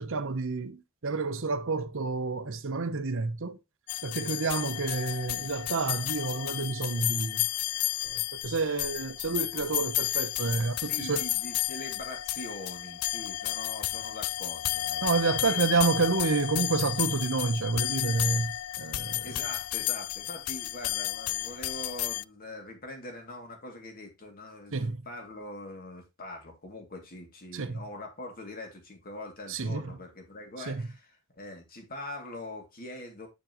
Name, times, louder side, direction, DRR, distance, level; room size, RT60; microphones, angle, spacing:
voice 1, 0.0-3.6 4.0-7.5 8.0-11.2 15.0-19.3 24.7-25.0 27.5-27.8 29.5-30.0 30.7-30.9, right 4 dB, 60° right, 0.8 m, -29 dB
sound 1, 3.9-22.2, left 16 dB, 70° left, 0.3 m, -32 dB
voice 2, 10.9-15.0 15.4-15.8 19.2-33.3, left 1 dB, 45° left, 2.4 m, -43 dB
7.4 x 7.0 x 3.0 m
head